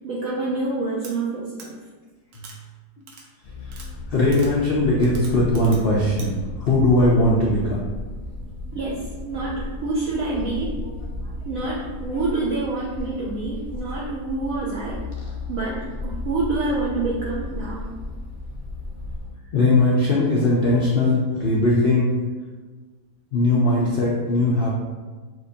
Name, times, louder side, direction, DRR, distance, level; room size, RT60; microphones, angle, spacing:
voice 1, 0.0-1.7 8.7-10.7 11.4-15.0 15.5-17.9, right 3 dB, 70° right, -4 dB, 0.9 m, -27 dB
sound 1, 1.0-1.1 1.6-1.7 2.3-2.6 3.1-3.2 3.7-3.9 4.3-4.5 5.0-5.8 6.2-6.3, right 4 dB, 90° right, 1.4 m, -42 dB
sound 2, 3.4-19.3, left 2 dB, 45° left, 0.7 m, -34 dB
voice 2, 4.1-6.3 6.6-7.8 11.2-11.3 11.6-11.7 19.5-22.1 23.3-24.8, left 2 dB, 80° left, -5 dB, 0.5 m, -19 dB
6.3 x 2.5 x 2.7 m, 1.4 s
omnidirectional pair, 1.8 m